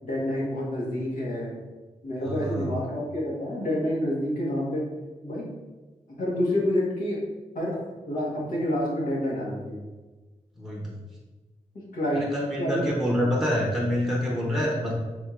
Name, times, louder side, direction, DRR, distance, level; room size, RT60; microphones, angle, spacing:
voice 1, 0.0-1.5 2.0-4.8 5.2-5.5 6.1-7.2 7.5-7.8 8.1-9.8 11.9-12.8, left 1 dB, 90° left, -5 dB, 1.3 m, -28 dB
voice 2, 2.2-2.8 10.6-11.0 12.1-14.9, equal, ahead, -3 dB, 0.8 m, -27 dB
4.4 x 3.6 x 2.4 m, 1.2 s
wide cardioid pair, 125°, 14 cm